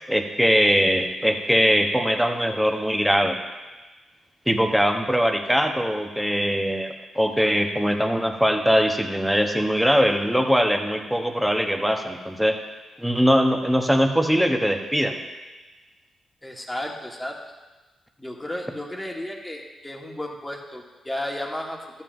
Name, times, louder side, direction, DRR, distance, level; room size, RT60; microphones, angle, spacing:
voice 1, 0.1-3.4 4.5-12.6 13.0-15.1, equal, ahead, 4 dB, 0.9 m, -21 dB
voice 2, 16.4-17.4 18.2-22.0, left 1 dB, 15° left, 0 dB, 1.4 m, -33 dB
12.0 x 7.3 x 2.6 m, 1.2 s
cardioid pair, 65°, 0 cm